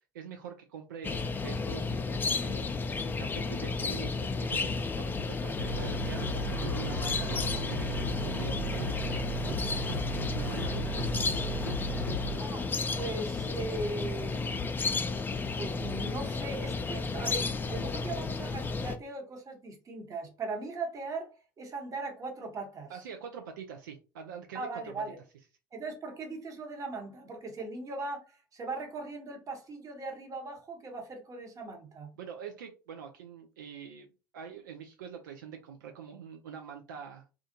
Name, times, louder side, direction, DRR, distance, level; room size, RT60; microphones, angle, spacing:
voice 1, 0.1-2.7 3.2-9.2 10.3-11.0 22.9-25.0 32.2-34.1 34.3-37.2, right 7 dB, 70° right, 0.4 m, -45 dB
sound 1, 1.0-19.0, left 4 dB, 20° left, 0.4 m, -33 dB
sound 2, 5.6-12.4, right 2 dB, 85° right, 0.9 m, -36 dB
voice 2, 12.4-12.7 13.0-14.9 15.5-21.3 21.6-22.9 24.5-25.2 25.7-32.1, right 3 dB, 30° right, 0.9 m, -39 dB
2.4 x 2.4 x 2.6 m
figure-of-eight pair, 70°, 11 cm